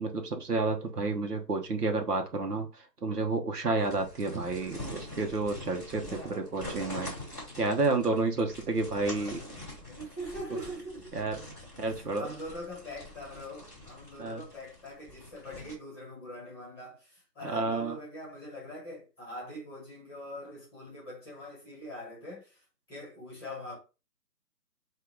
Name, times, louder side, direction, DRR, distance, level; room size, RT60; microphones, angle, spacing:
voice 1, 0.0-7.1 7.6-9.4 11.1-11.4 11.8-12.3 14.2-14.4 17.4-18.0, right 3 dB, 65° right, 1.2 m, -30 dB
sound 1, 3.8-15.7, left 1 dB, 10° right, 1.3 m, -45 dB
voice 2, 6.0-6.5 9.1-9.4 9.9-11.2 11.9-23.8, equal, 15° left, 1.5 m, -43 dB
3.8 x 2.8 x 4.7 m
hypercardioid pair, 175°, 49 cm